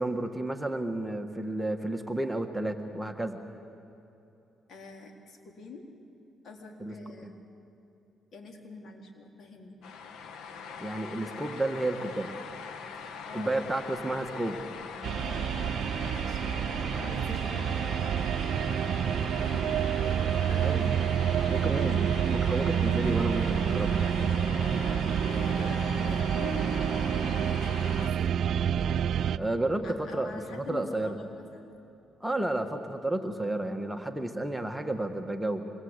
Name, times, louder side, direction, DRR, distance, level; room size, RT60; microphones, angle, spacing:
voice 1, 0.0-3.4 6.8-6.9 7.2-7.3 10.8-12.3 13.3-14.6 20.6-21.0 21.5-24.3 29.4-31.2 32.2-35.7, right 2 dB, 5° right, 4 dB, 1.5 m, -31 dB
voice 2, 4.7-5.9 6.4-7.3 8.3-9.8 12.9-14.0 15.2-18.0 19.5-20.9 25.3-28.3 29.8-31.7, left 3 dB, 60° left, 2 dB, 3.9 m, -46 dB
sound 1, 9.8-28.1, left 6 dB, 80° left, 1.4 m, -42 dB
sound 2, 15.0-29.4, right 8 dB, 65° right, 0.6 m, -28 dB
26.5 x 22.0 x 8.2 m, 2.9 s
cardioid pair, 90°, 0 cm